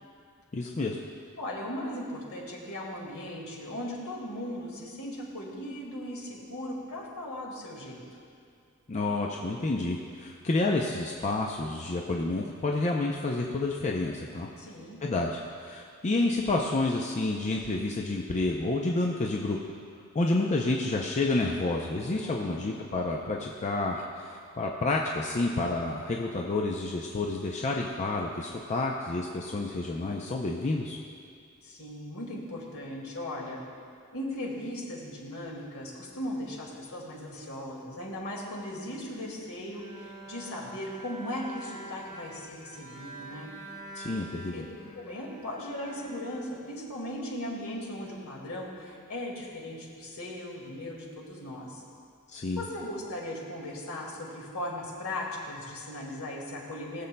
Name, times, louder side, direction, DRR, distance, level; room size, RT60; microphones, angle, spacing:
voice 1, 0.5-1.0 8.9-14.5 15.0-19.6 20.1-31.0 44.0-44.6 52.3-52.6, left 2 dB, 30° left, -1 dB, 0.5 m, -29 dB
voice 2, 1.4-8.0 14.6-15.0 22.2-22.7 31.6-33.6 34.1-43.5 44.5-44.6 44.9-51.8 52.6-57.1, left 1 dB, 70° left, -3 dB, 2.0 m, -38 dB
Bowed string instrument, 39.7-47.1, right 2 dB, 30° right, 2.0 m, -46 dB
20.0 x 6.9 x 2.2 m, 2.3 s
head